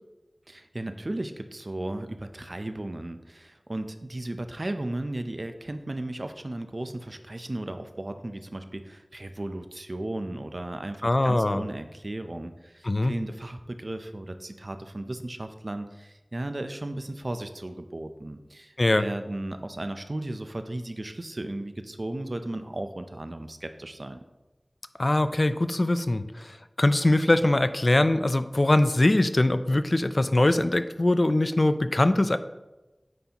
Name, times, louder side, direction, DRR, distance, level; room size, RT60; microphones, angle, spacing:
voice 1, 0.5-24.2, right 1 dB, 55° right, 8 dB, 0.5 m, -35 dB
voice 2, 11.0-11.6 12.8-13.1 18.8-19.0 25.0-32.4, left 1 dB, 55° left, 11 dB, 0.3 m, -22 dB
9.1 x 4.1 x 2.9 m, 1.1 s
wide cardioid pair, 50°, 0 cm